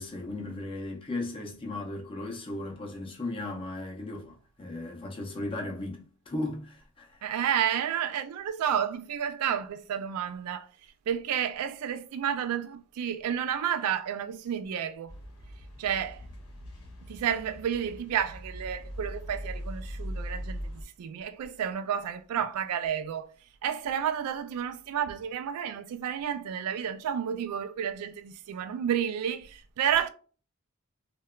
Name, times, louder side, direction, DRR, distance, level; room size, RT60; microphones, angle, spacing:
voice 1, 0.0-7.2, left 2 dB, 25° left, 0.4 m, -36 dB
voice 2, 7.2-10.7 11.1-15.2 15.8-16.2 17.1-23.3 23.6-30.1, right 9 dB, 85° right, 0.3 m, -31 dB
sound 1, 15.1-20.8, equal, 90° left, 0.7 m, -40 dB
2.8 x 2.2 x 2.2 m
head